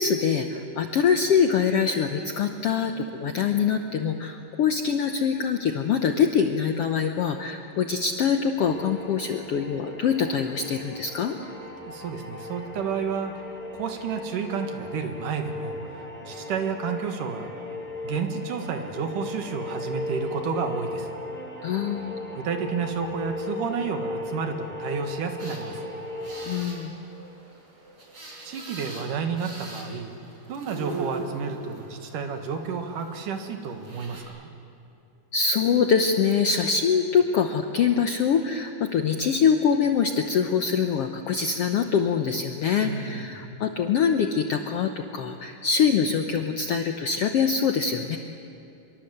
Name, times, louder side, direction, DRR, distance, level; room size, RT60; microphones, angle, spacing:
voice 1, 0.0-11.4 21.6-22.3 26.4-26.9 35.3-48.2, left 6 dB, 70° left, 6 dB, 1.4 m, -24 dB
sound 1, 8.6-26.5, left 2 dB, 5° left, 5.5 m, -37 dB
voice 2, 11.9-13.4 13.7-15.8 16.2-17.5 18.0-21.1 22.4-25.9 28.4-30.1 30.5-34.5 42.8-43.5, right 6 dB, 75° right, 5 dB, 3.2 m, -31 dB
sound 2, 25.4-34.2, right 3 dB, 35° right, 5.1 m, -42 dB
25.0 x 23.0 x 8.0 m, 2.8 s
omnidirectional pair, 3.9 m